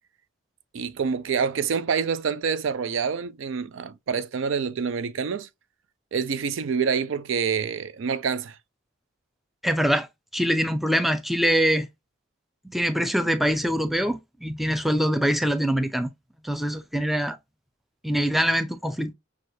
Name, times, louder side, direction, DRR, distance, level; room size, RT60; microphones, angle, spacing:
voice 1, 0.7-5.5 6.1-8.6, right 6 dB, 70° right, 0.4 m, -27 dB
voice 2, 9.6-10.1 10.3-11.9 12.6-16.1 16.4-17.4 18.0-19.1, equal, ahead, 0.3 m, -24 dB
6.1 x 2.4 x 2.7 m
head